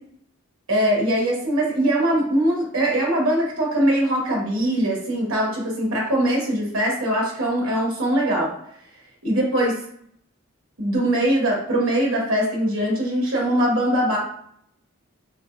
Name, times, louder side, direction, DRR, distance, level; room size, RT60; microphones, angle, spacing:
voice 1, 0.7-8.5 9.2-9.8 10.8-14.2, right 1 dB, 85° right, -3 dB, 1.4 m, -21 dB
6.5 x 2.2 x 2.3 m, 0.67 s
head